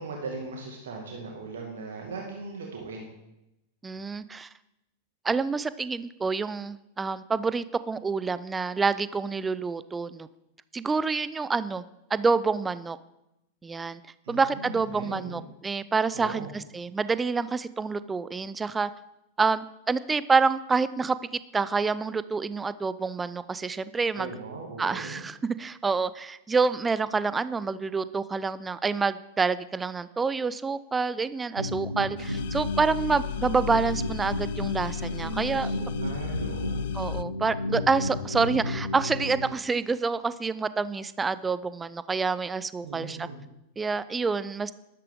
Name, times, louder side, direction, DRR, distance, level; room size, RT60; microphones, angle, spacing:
voice 1, 0.0-3.1 14.2-15.4 16.1-16.5 24.1-25.2 35.0-36.9 42.8-43.4, right 3 dB, 65° right, 0 dB, 2.0 m, -38 dB
voice 2, 3.8-4.5 5.2-10.3 10.7-11.8 12.1-13.0 13.6-14.0 14.3-18.9 19.4-21.2 21.5-24.3 24.8-35.7 36.9-43.3 43.8-44.7, right 4 dB, 15° right, 16 dB, 0.5 m, -27 dB
sound 1, 31.6-39.5, left 2 dB, 90° right, 0.8 m, -32 dB
sound 2, 32.2-37.2, left 15 dB, 55° left, 0.3 m, -37 dB
12.5 x 11.5 x 3.7 m, 0.88 s
figure-of-eight pair, 90°, 0 cm